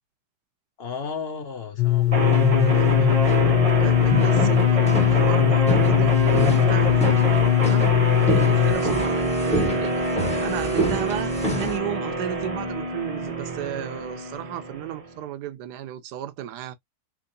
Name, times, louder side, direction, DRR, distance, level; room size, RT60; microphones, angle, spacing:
voice 1, 0.8-3.3, left 7 dB, 55° left, 0.7 m, -34 dB
sound 1, 1.8-8.8, left 16 dB, 80° left, 1.3 m, -20 dB
sound 2, 2.1-11.8, right 1 dB, 5° left, 0.5 m, -29 dB
sound 3, 2.1-15.1, right 1 dB, 50° right, 0.4 m, -25 dB
voice 2, 3.8-7.2 7.6-10.0 10.4-16.7, right 12 dB, 75° right, 1.2 m, -34 dB
3.7 x 2.9 x 2.5 m
omnidirectional pair, 1.9 m